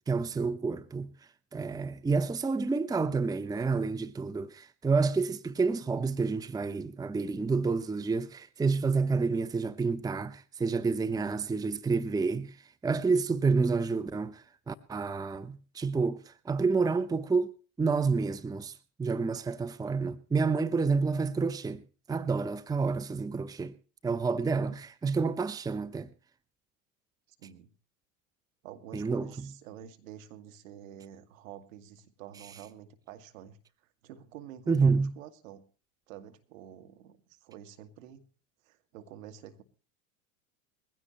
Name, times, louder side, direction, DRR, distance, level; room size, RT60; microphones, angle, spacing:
voice 1, 0.1-1.1 1.5-12.6 12.8-17.5 17.8-21.8 22.1-23.7 24.0-26.1 28.9-29.3 34.7-35.1, right 4 dB, 10° right, 0.8 m, -29 dB
voice 2, 27.4-27.7 28.6-33.6 34.0-35.6 36.1-38.2 38.6-39.6, right 10 dB, 65° right, 2.2 m, -48 dB
21.0 x 16.0 x 3.0 m
hypercardioid pair, 85°, 42 cm